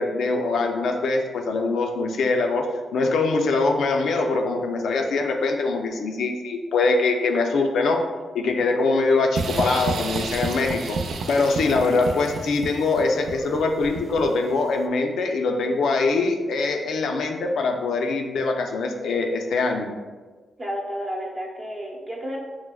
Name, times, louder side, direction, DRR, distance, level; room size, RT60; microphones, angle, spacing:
voice 1, 0.0-8.0 8.3-11.0 11.3-19.9, left 3 dB, 80° left, 3 dB, 0.4 m, -23 dB
sound 1, 9.3-14.5, right 4 dB, 70° right, 0.3 m, -31 dB
voice 2, 20.6-22.4, equal, 30° right, -3 dB, 0.7 m, -31 dB
5.9 x 2.0 x 2.2 m, 1.4 s
cardioid pair, 90°, 0 cm